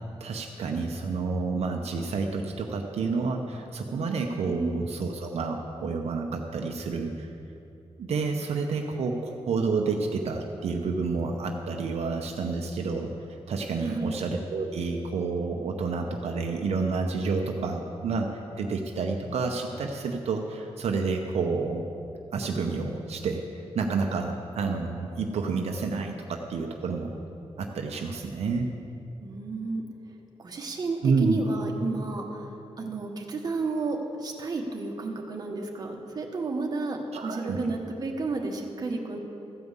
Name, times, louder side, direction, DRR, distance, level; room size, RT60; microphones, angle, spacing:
voice 1, 0.2-7.3 8.0-13.1 13.5-21.8 22.3-27.1 27.6-28.7 31.0-31.4 37.1-37.6, right 4 dB, 75° right, 2 dB, 0.8 m, -29 dB
voice 2, 4.4-4.8 13.8-14.2 29.2-29.8 30.4-32.5 32.8-39.2, right 3 dB, 35° right, 1 dB, 1.2 m, -31 dB
13.5 x 5.3 x 8.1 m, 2.7 s
wide cardioid pair, 160°, 11 cm